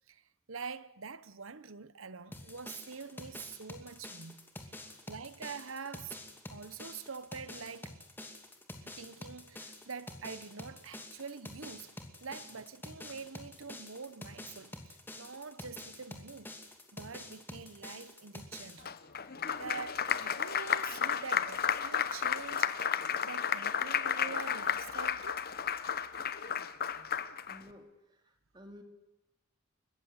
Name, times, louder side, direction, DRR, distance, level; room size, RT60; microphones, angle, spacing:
voice 1, 0.1-4.8 5.1-6.2 6.5-7.9 8.8-16.6 16.9-19.0 19.6-22.8 23.2-25.5, right 5 dB, 75° right, 1.1 m, -45 dB
sound 1, 2.3-18.8, left 1 dB, 10° left, 2.6 m, -48 dB
Applause, 18.9-27.6, left 8 dB, 45° left, 1.0 m, -33 dB
voice 2, 27.5-28.8, left 1 dB, 20° right, 3.0 m, -54 dB
30.0 x 15.0 x 8.3 m
head